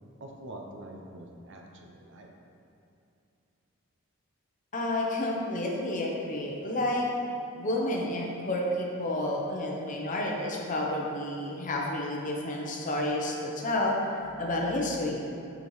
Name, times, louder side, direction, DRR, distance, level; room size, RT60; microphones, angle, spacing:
voice 1, 0.2-2.3, right 1 dB, 55° right, 1 dB, 0.6 m, -45 dB
voice 2, 4.7-7.1 7.6-15.2, left 1 dB, 35° left, -1 dB, 0.7 m, -30 dB
6.6 x 5.1 x 3.1 m, 2.6 s
head